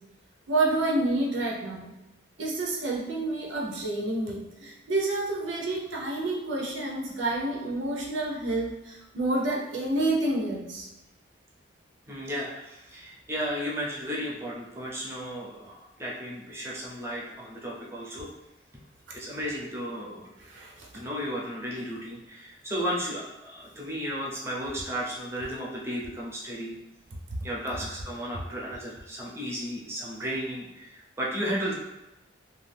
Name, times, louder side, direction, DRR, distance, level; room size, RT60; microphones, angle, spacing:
voice 1, 0.5-1.9 2.4-10.9 20.4-20.9, right 2 dB, 85° right, -2 dB, 0.7 m, -29 dB
voice 2, 12.1-18.3 19.1-20.3 20.9-26.8 27.4-31.7, equal, 15° right, -4 dB, 0.6 m, -34 dB
2.5 x 2.4 x 3.4 m, 0.96 s
head